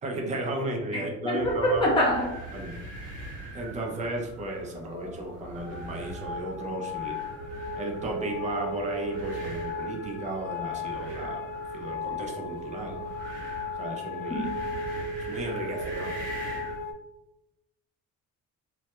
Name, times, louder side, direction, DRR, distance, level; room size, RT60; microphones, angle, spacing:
voice 1, 0.0-1.8 2.5-2.7 3.5-7.2 7.7-13.0 13.8-14.5 15.3-16.2, right 1 dB, 25° right, 1 dB, 0.4 m, -34 dB
voice 2, 1.2-2.3 14.3-14.5, equal, 15° left, -4 dB, 0.6 m, -24 dB
sound 1, 1.3-16.8, right 2 dB, 80° right, 0.7 m, -43 dB
sound 2, 4.4-16.9, left 2 dB, 85° left, 0.5 m, -36 dB
2.1 x 2.1 x 2.8 m, 0.91 s
cardioid pair, 155°, 31 cm